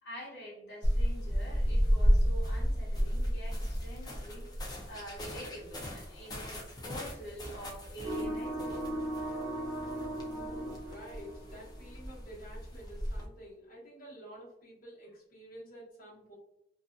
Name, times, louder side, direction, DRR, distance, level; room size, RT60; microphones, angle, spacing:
voice 1, 0.0-4.5 4.9-8.9, right 1 dB, 85° left, -6 dB, 1.1 m, -46 dB
sound 1, 0.8-13.3, equal, 25° left, 0.5 m, -33 dB
sound 2, 8.0-11.9, right 1 dB, ahead, 0.8 m, -37 dB
voice 2, 10.4-16.3, equal, 55° left, -7 dB, 1.1 m, -50 dB
2.6 x 2.5 x 2.2 m, 0.81 s
head